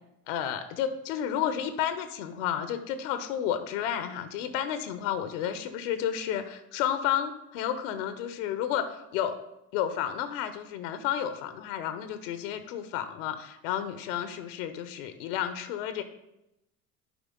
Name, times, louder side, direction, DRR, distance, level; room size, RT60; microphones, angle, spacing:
voice 1, 0.3-9.3 9.7-16.0, left 10 dB, 60° left, 10 dB, 0.8 m, -31 dB
11.0 x 4.9 x 3.7 m, 0.87 s
figure-of-eight pair, 70°, 42 cm